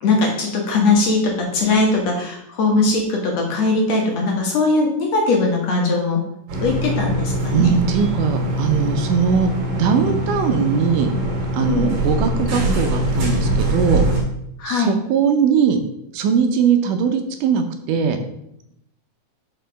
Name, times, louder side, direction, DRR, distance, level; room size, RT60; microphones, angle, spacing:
voice 1, 0.0-6.2 6.6-7.7 11.7-11.9 14.6-14.9, left 3 dB, 60° left, 0 dB, 2.0 m, -20 dB
sound 1, 6.5-14.2, right 1 dB, 50° right, 2.5 m, -22 dB
voice 2, 7.5-11.1 11.5-14.1 14.6-15.8 16.1-18.2, right 6 dB, 75° right, 6 dB, 2.1 m, -20 dB
6.5 x 5.7 x 5.1 m, 0.78 s
omnidirectional pair, 3.9 m